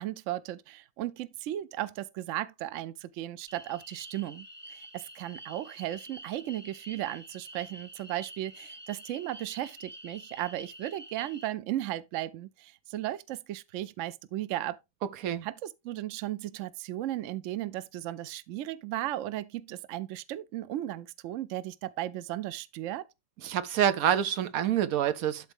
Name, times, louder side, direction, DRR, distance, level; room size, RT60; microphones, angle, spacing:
voice 1, 0.0-14.8 15.4-23.1, right 14 dB, 70° right, 0.9 m, -36 dB
sound 1, 3.5-11.5, right 1 dB, 10° right, 0.7 m, -48 dB
voice 2, 23.4-25.5, right 10 dB, 90° right, 1.2 m, -27 dB
12.0 x 4.0 x 3.5 m
omnidirectional pair, 1.4 m